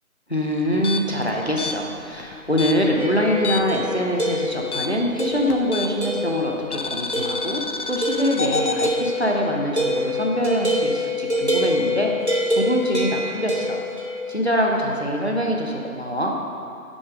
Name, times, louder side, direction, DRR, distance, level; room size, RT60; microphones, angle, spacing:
voice 1, 0.3-7.6 7.9-12.1 12.5-13.8 14.3-16.3, equal, 45° left, 0 dB, 0.7 m, -24 dB
sound 1, 0.7-3.9 4.1-6.2 6.7-8.9, left 4 dB, 85° left, 0.6 m, -29 dB
sound 2, 3.0-4.7 5.2-5.6 6.0-6.6 7.1-7.5 8.0-14.2, left 1 dB, 50° right, 0.8 m, -25 dB
6.2 x 4.8 x 4.9 m, 2.4 s
figure-of-eight pair, 175°, 44 cm